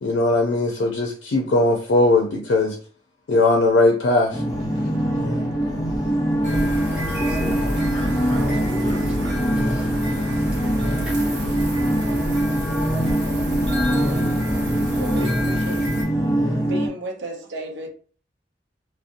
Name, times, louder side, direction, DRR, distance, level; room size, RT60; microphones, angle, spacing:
voice 1, 0.0-2.8 3.3-4.4, left 2 dB, 85° left, 0.4 m, -19 dB
sound 1, 4.3-16.9, equal, 20° left, 0.5 m, -23 dB
Wind, 4.5-14.3, equal, 40° right, 0.7 m, -36 dB
sound 2, 6.4-16.0, equal, 65° right, 1.0 m, -30 dB
voice 2, 6.9-7.9 8.1-11.6, equal, 5° right, 0.8 m, -41 dB
voice 3, 15.0-15.9 16.5-17.9, right 1 dB, 85° right, 0.5 m, -34 dB
2.7 x 2.0 x 2.5 m
head